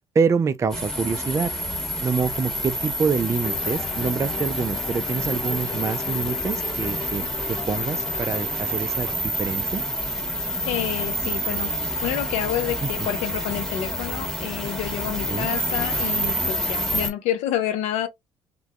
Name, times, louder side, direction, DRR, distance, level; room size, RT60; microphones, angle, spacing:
voice 1, 0.1-1.5 2.0-9.8 12.8-13.1 15.3-15.5, right 5 dB, 25° right, 0.4 m, -26 dB
sound 1, 0.7-17.1, equal, 5° left, 1.4 m, -28 dB
sound 2, 3.4-9.2, left 2 dB, 30° left, 1.0 m, -38 dB
voice 2, 10.7-11.7 12.0-18.1, left 11 dB, 75° left, 0.6 m, -28 dB
2.5 x 2.2 x 2.3 m
supercardioid pair, 70°, 12 cm